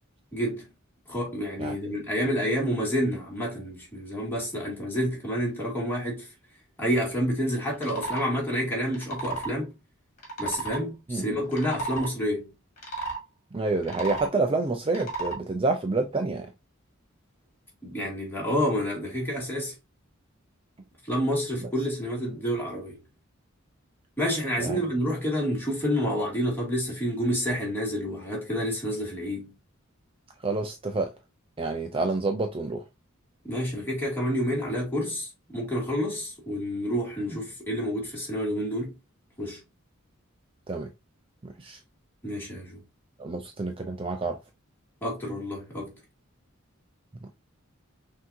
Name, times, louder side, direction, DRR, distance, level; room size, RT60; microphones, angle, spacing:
voice 1, 0.3-0.7 1.1-6.3 6.8-9.7 10.4-12.5 17.8-19.7 21.1-23.0 24.2-29.5 33.4-38.9 39.4-39.6 42.2-42.8 45.0-45.9, equal, 10° left, 2.3 m, -29 dB
sound 1, 7.8-8.3 8.9-9.5 10.2-10.8 11.4-12.1 12.8-13.2 13.8-14.3 14.9-15.4, right 3 dB, 35° left, 1.9 m, -33 dB
voice 2, 13.5-16.5 21.6-21.7 24.6-24.8 30.4-31.1 31.6-32.8 40.7-40.9 41.6-41.8 43.2-44.4, right 3 dB, 25° right, 0.5 m, -28 dB
6.1 x 2.8 x 2.6 m
head